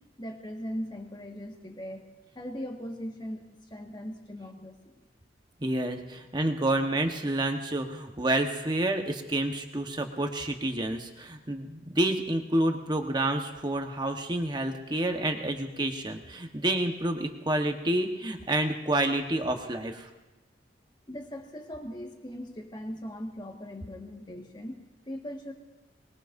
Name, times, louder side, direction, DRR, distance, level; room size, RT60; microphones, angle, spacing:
voice 1, 0.2-4.9 21.1-25.5, equal, 25° left, 2 dB, 1.8 m, -39 dB
voice 2, 5.6-20.1, right 1 dB, 25° right, 4 dB, 1.2 m, -29 dB
23.0 x 21.0 x 2.7 m, 1.1 s
head